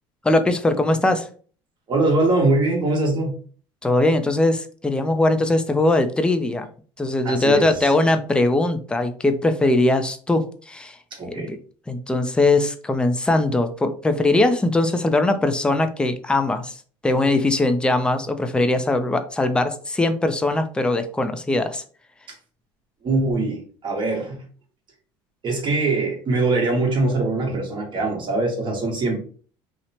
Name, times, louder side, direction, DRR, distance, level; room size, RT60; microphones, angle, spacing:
voice 1, 0.2-1.3 3.8-6.7 7.0-11.0 11.2-11.6 11.9-21.8, left 2 dB, 10° left, 8 dB, 0.4 m, -21 dB
voice 2, 1.9-3.3 7.2-7.6 11.2-11.5 23.0-24.4 25.4-29.2, right 2 dB, 40° right, 0 dB, 1.2 m, -22 dB
2.8 x 2.1 x 2.7 m, 0.43 s
supercardioid pair, 90°, 12 cm